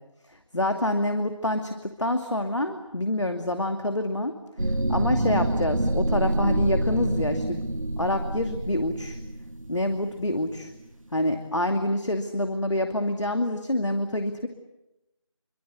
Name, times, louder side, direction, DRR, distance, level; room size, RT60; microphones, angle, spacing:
voice 1, 0.5-4.3 4.9-7.6 8.0-9.2 9.7-10.7 11.1-14.5, left 1 dB, 65° left, 6 dB, 2.6 m, -27 dB
sound 1, 4.6-10.6, right 1 dB, 85° right, 1.4 m, -27 dB
28.0 x 24.5 x 8.4 m, 0.92 s
figure-of-eight pair, 170°, 17 cm